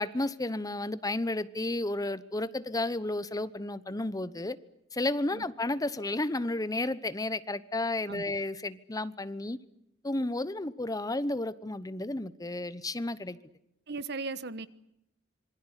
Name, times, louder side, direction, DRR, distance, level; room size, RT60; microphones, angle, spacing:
voice 1, 0.0-4.6 4.9-9.6 10.0-13.4, left 2 dB, 20° left, 1.0 m, -32 dB
voice 2, 13.9-14.7, right 3 dB, 60° right, 1.3 m, -37 dB
26.5 x 24.0 x 8.2 m
head